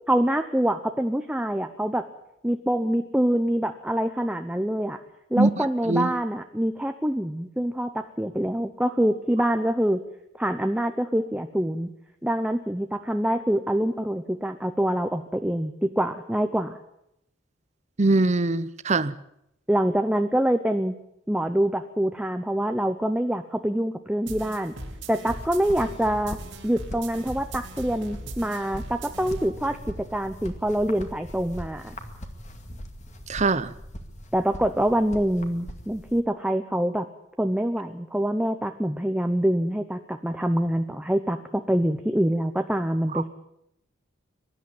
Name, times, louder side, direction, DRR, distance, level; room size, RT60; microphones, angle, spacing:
voice 1, 0.1-2.1 2.4-5.0 5.3-10.0 10.4-11.9 12.2-16.8 19.7-20.9 21.3-24.7 25.1-26.4 26.6-31.9 34.3-37.1 37.4-43.3, right 1 dB, 5° right, 0.8 m, -25 dB
voice 2, 5.4-6.1 18.0-19.1 33.3-33.7 43.1-43.2, right 2 dB, 35° right, 0.8 m, -23 dB
sound 1, 24.3-29.5, right 2 dB, 70° right, 2.9 m, -39 dB
sound 2, 25.3-36.2, equal, 35° left, 2.2 m, -41 dB
23.5 x 11.5 x 9.6 m
head